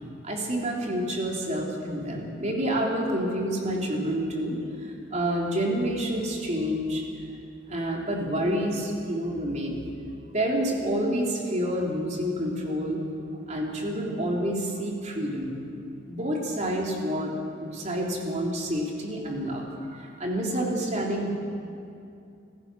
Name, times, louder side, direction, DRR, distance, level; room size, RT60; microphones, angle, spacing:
voice 1, 0.2-7.0 7.7-9.8 10.3-13.0 13.5-15.5 16.0-17.3 17.6-21.3, equal, 35° right, -1 dB, 3.5 m, -28 dB
25.5 x 16.0 x 6.3 m, 2.5 s
head